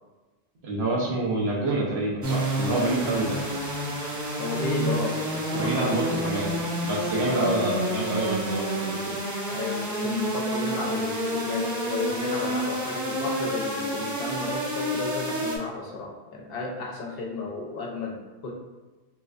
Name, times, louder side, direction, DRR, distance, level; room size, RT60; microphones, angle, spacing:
voice 1, 0.6-3.4 5.5-6.5 6.8-9.0, right 2 dB, 80° right, -4 dB, 1.1 m, -27 dB
sound 1, 2.2-15.6, right 1 dB, 30° right, 0.4 m, -29 dB
voice 2, 4.4-6.7 7.3-7.8 9.5-18.5, left 3 dB, 70° left, -1 dB, 0.8 m, -33 dB
3.2 x 3.0 x 2.4 m, 1.2 s
omnidirectional pair, 1.0 m